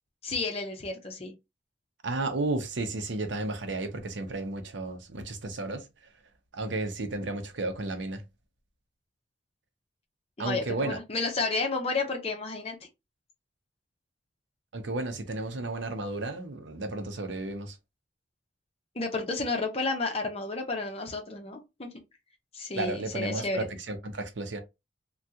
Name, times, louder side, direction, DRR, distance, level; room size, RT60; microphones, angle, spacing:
voice 1, 0.2-1.3 10.4-12.8 18.9-21.9 22.5-23.7, left 3 dB, 30° left, 0.7 m, -31 dB
voice 2, 2.0-5.9 6.5-8.2 10.4-11.0 14.7-17.8 22.8-24.6, right 2 dB, 75° right, 0.7 m, -33 dB
3.4 x 2.3 x 2.7 m
head